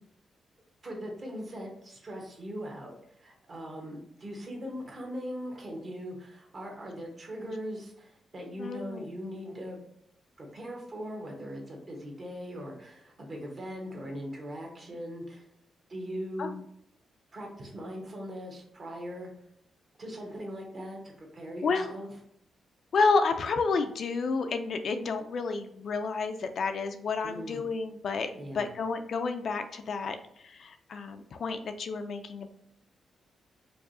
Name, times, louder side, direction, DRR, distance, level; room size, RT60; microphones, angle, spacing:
voice 1, 0.8-9.8 10.4-15.4 15.9-16.6 17.3-19.3 20.0-22.1 27.2-27.6 28.3-28.7, equal, 35° right, 0 dB, 1.0 m, -40 dB
voice 2, 8.6-9.1 16.4-16.5 21.6-21.9 22.9-30.2 30.4-32.5, left 4 dB, 50° left, 7 dB, 0.3 m, -30 dB
4.6 x 2.7 x 2.6 m, 0.72 s
wide cardioid pair, 165°, 0 cm